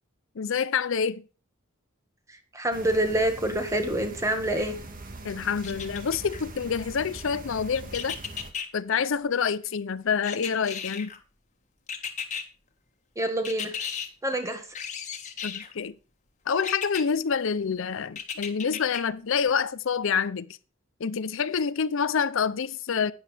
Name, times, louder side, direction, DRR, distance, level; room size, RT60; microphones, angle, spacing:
voice 1, 0.4-1.2 5.2-8.2 8.7-11.1 15.4-15.9 16.5-20.6 21.0-23.1, left 6 dB, 65° left, 0.5 m, -27 dB
voice 2, 2.3-4.8 13.2-13.8 14.2-14.7, right 1 dB, 15° right, 1.7 m, -27 dB
sound 1, 2.7-8.5, right 2 dB, 45° right, 1.7 m, -42 dB
sound 2, 5.6-6.4 7.9-8.7 10.2-11.2 11.9-12.4 13.4-14.1 14.7-15.7 16.6-17.0 18.2-19.0 19.5-19.6, left 7 dB, 35° left, 1.7 m, -34 dB
11.5 x 9.6 x 3.4 m
head